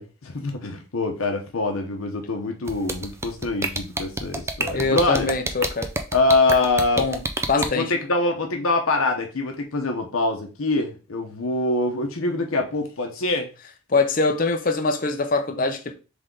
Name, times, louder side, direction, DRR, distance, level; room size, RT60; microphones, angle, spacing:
voice 1, 0.0-5.3 6.1-7.1 7.5-13.5, left 2 dB, 90° left, 0.8 m, -24 dB
sound 1, 2.7-7.7, right 2 dB, 15° right, 0.3 m, -27 dB
voice 2, 4.7-5.9 7.0-7.2 7.5-7.9 13.9-16.0, left 3 dB, 40° left, 0.6 m, -23 dB
3.7 x 3.4 x 3.8 m
head